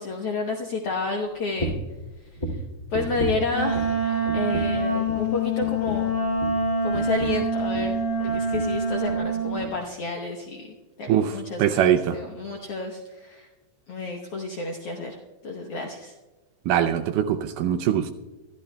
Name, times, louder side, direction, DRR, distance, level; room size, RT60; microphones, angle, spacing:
voice 1, 0.0-1.7 2.5-2.6 2.9-6.1 6.8-13.5 13.9-16.1, left 3 dB, 75° left, 1 dB, 1.3 m, -31 dB
sound 1, 1.6-2.0 2.4-4.0 4.3-4.8 5.1-5.3 5.6-8.0 8.3-8.7 9.0-9.3 9.6-9.7, right 1 dB, 15° left, 1.5 m, -33 dB
Wind instrument woodwind instrument, 3.5-9.6, right 1 dB, 45° left, 6.5 m, -25 dB
voice 2, 11.6-12.2 16.7-18.1, right 10 dB, 80° right, 8 dB, 2.0 m, -22 dB
24.0 x 13.0 x 2.2 m, 1.1 s
omnidirectional pair, 4.2 m